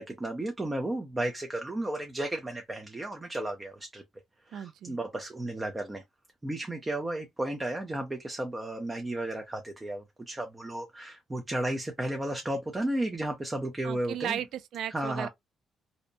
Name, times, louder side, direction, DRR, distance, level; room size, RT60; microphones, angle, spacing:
voice 1, 0.0-4.0 4.5-6.0 6.4-14.4 14.9-15.3, right 1 dB, 20° right, 0.5 m, -33 dB
voice 2, 4.5-5.0 13.8-15.3, right 10 dB, 75° right, 0.3 m, -35 dB
2.7 x 2.1 x 2.6 m
cardioid pair, 90°, 0 cm